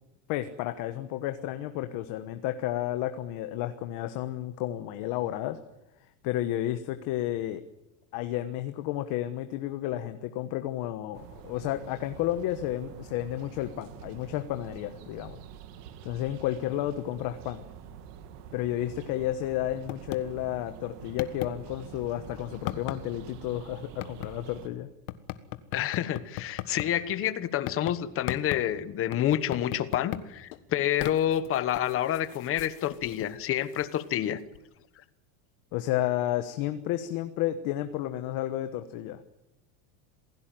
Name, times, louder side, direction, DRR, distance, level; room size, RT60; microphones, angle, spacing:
voice 1, 0.3-5.6 6.2-7.6 8.1-15.4 16.0-17.6 18.5-24.9 35.7-39.2, left 13 dB, 45° left, 9 dB, 1.3 m, -32 dB
sound 1, 11.1-24.7, right 8 dB, 70° right, 2.6 m, -47 dB
sound 2, 19.9-20.2 20.7-20.8 21.2-21.5 22.7-23.0 24.0-24.3 25.1-26.9 27.7-28.0 28.3-28.6 29.1-30.3 30.5-34.2 34.5-34.6, left 17 dB, 65° left, 1.7 m, -37 dB
voice 2, 25.7-34.4, left 11 dB, 25° left, 14 dB, 1.1 m, -28 dB
27.5 x 16.5 x 9.1 m, 0.92 s
supercardioid pair, 165°, 48 cm